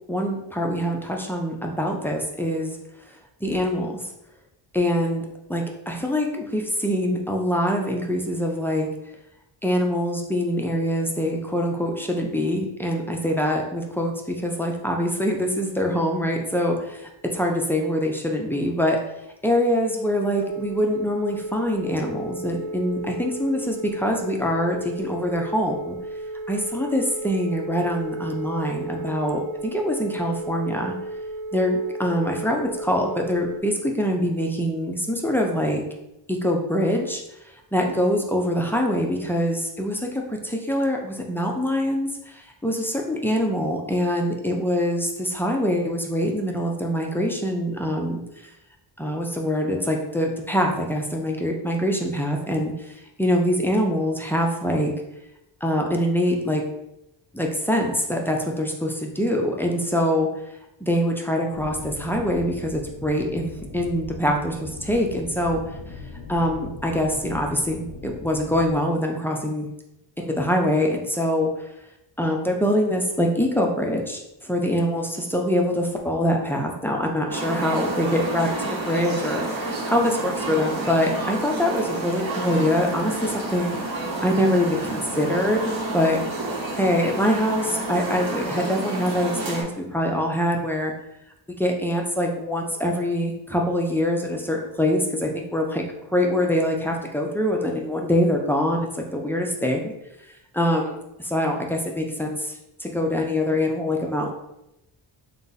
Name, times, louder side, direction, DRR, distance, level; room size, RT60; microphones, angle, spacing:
voice 1, 0.1-2.8 3.4-4.0 4.7-5.2 5.5-8.9 9.6-19.0 19.4-26.0 26.5-30.9 31.5-35.8 36.3-37.2 37.7-48.2 49.0-54.9 55.6-56.6 57.3-60.3 60.8-65.6 66.3-69.7 70.2-71.5 72.2-83.8 84.2-86.2 86.8-90.9 91.5-100.0 100.5-102.5 102.8-104.3, equal, 5° left, 1 dB, 0.3 m, -24 dB
Telephone, 20.4-33.6, right 2 dB, 70° right, 0.5 m, -34 dB
sound 1, 61.5-68.7, left 3 dB, 50° left, 0.6 m, -39 dB
sound 2, 77.3-89.6, right 2 dB, 50° right, 0.9 m, -29 dB
3.8 x 2.3 x 3.9 m, 0.87 s
wide cardioid pair, 145°, 45 cm